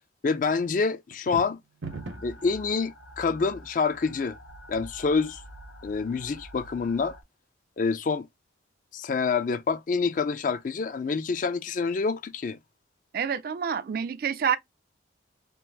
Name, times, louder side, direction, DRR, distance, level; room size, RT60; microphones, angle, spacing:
voice 1, 0.2-1.6 2.2-4.4 4.7-5.4 5.8-7.2 7.8-8.3 8.9-12.6, left 4 dB, 45° left, 0.3 m, -27 dB
sound 1, 1.1-2.4, right 3 dB, 85° right, 0.8 m, -38 dB
sound 2, 1.9-7.2, equal, 80° left, 0.7 m, -47 dB
voice 2, 13.1-14.6, right 7 dB, 50° right, 0.3 m, -27 dB
3.7 x 2.5 x 2.6 m
head